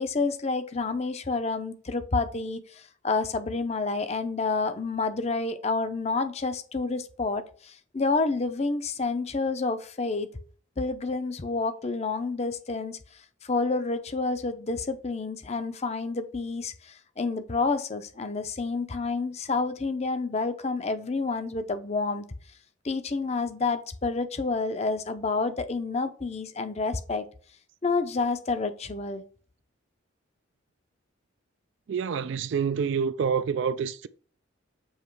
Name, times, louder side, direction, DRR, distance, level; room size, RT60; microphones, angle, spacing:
voice 1, 0.0-10.3 10.8-13.0 13.4-22.2 22.8-27.3 27.8-29.2, left 3 dB, 30° left, 0.6 m, -29 dB
voice 2, 31.9-34.1, right 6 dB, 60° right, 0.3 m, -27 dB
7.2 x 3.0 x 4.6 m
head